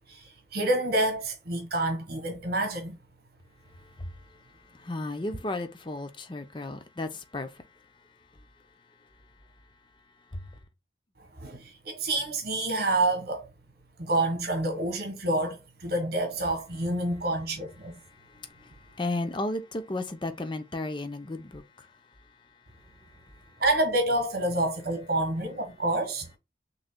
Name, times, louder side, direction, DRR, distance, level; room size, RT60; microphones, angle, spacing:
voice 1, 0.1-3.0 11.4-13.5 14.0-18.0 23.6-26.3, right 2 dB, 55° right, 1.4 m, -28 dB
voice 2, 3.7-7.8 10.3-10.5 18.0-21.9 23.0-23.6, left 2 dB, 25° left, 0.6 m, -35 dB
6.3 x 3.2 x 2.2 m
head